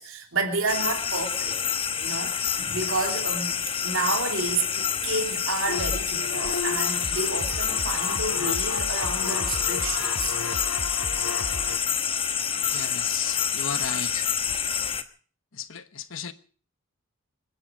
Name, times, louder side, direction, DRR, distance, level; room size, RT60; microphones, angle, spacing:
voice 1, 0.0-1.6 2.0-3.5 3.8-10.4, right 3 dB, 65° right, 3.1 m, -30 dB
sound 1, 0.7-15.0, left 7 dB, 25° left, 1.0 m, -27 dB
sound 2, 5.7-11.8, left 3 dB, 85° left, 1.8 m, -33 dB
voice 2, 12.7-14.3 15.5-16.3, left 7 dB, 65° left, 1.2 m, -35 dB
27.0 x 10.0 x 5.1 m
head